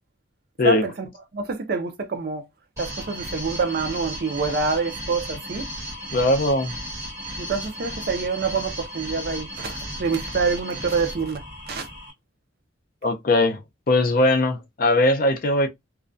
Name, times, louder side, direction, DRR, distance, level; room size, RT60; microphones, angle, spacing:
voice 1, 0.6-2.5 2.8-5.7 7.4-11.9, right 4 dB, 50° right, 0.4 m, -26 dB
sound 1, 2.8-12.1, equal, 15° right, 1.3 m, -35 dB
voice 2, 6.1-6.7 13.0-13.6 13.9-15.7, left 2 dB, 45° left, 0.5 m, -20 dB
2.4 x 2.1 x 2.4 m
head